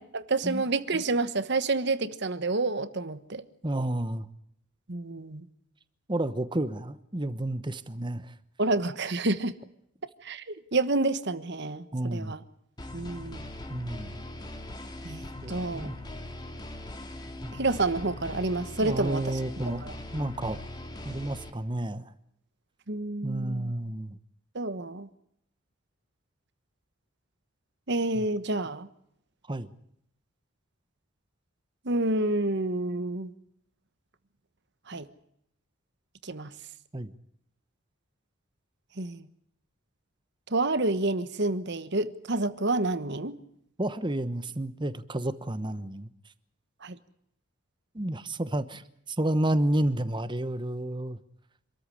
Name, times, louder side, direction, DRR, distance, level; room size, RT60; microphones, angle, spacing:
voice 1, 0.0-3.4 4.9-5.5 8.6-9.5 10.2-12.4 12.9-13.5 15.0-15.9 17.5-19.2 19.8-19.9 22.9-23.7 24.5-25.1 27.9-28.9 31.8-33.3 34.9-35.1 36.2-36.5 39.0-39.3 40.5-43.4 46.8-47.0, right 2 dB, 55° right, 1.2 m, -29 dB
voice 2, 3.6-4.3 6.1-8.3 11.9-12.3 13.7-14.2 15.4-16.0 17.4-17.5 18.8-19.8 20.1-20.6 21.0-22.1 23.2-24.2 28.1-28.2 29.5-29.7 36.9-37.1 43.8-46.1 47.9-51.2, right 1 dB, 20° right, 1.0 m, -31 dB
sound 1, 12.8-21.5, left 1 dB, 20° left, 2.4 m, -41 dB
26.5 x 14.0 x 10.0 m
head